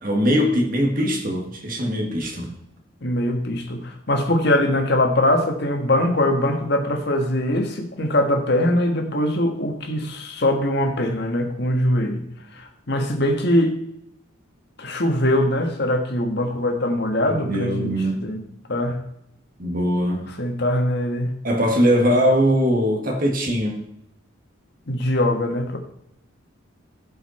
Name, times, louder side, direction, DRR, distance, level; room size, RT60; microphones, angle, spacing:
voice 1, 0.0-2.5 17.3-18.3 19.6-20.3 21.4-23.8, equal, 40° right, 1 dB, 2.1 m, -21 dB
voice 2, 3.0-12.2 12.5-13.8 14.8-17.9 18.2-18.4 18.7-19.0 20.4-21.3 24.9-25.8, left 1 dB, 50° left, 4 dB, 1.6 m, -22 dB
15.5 x 5.8 x 4.3 m, 0.77 s
head